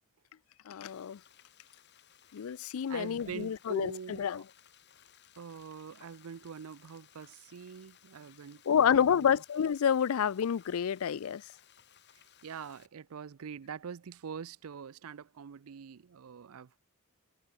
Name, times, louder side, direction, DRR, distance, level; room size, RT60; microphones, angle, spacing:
voice 1, 0.7-1.2 2.3-3.9 4.2-4.4 8.7-11.4, left 8 dB, 75° left, 0.4 m, -28 dB
Frying (food), 0.9-12.9, left 9 dB, 55° left, 3.8 m, -61 dB
voice 2, 2.9-4.4 5.4-9.4 12.4-16.8, right 6 dB, 80° right, 0.5 m, -44 dB
head